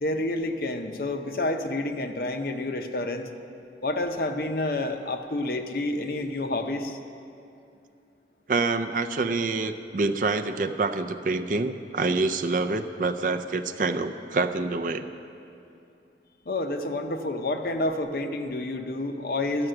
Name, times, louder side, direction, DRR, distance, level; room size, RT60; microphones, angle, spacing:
voice 1, 0.0-3.3 3.8-7.0 16.5-19.7, left 2 dB, 55° left, 6 dB, 0.7 m, -29 dB
voice 2, 8.5-15.1, right 3 dB, 45° right, 9 dB, 0.4 m, -26 dB
13.0 x 5.9 x 7.7 m, 2.6 s
head